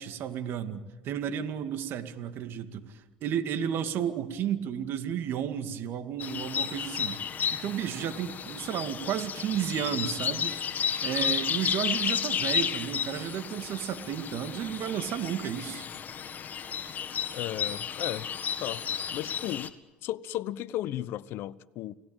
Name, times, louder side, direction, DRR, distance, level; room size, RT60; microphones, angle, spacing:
voice 1, 0.0-7.2 7.5-10.5 11.0-15.8, right 9 dB, 60° right, 2.3 m, -32 dB
sound 1, 6.2-19.7, left 7 dB, 45° left, 1.9 m, -32 dB
voice 2, 17.3-18.3 18.6-18.8 19.1-19.7 20.0-21.9, left 13 dB, 65° left, 0.9 m, -35 dB
30.0 x 19.0 x 9.0 m
hypercardioid pair, 75°, 4 cm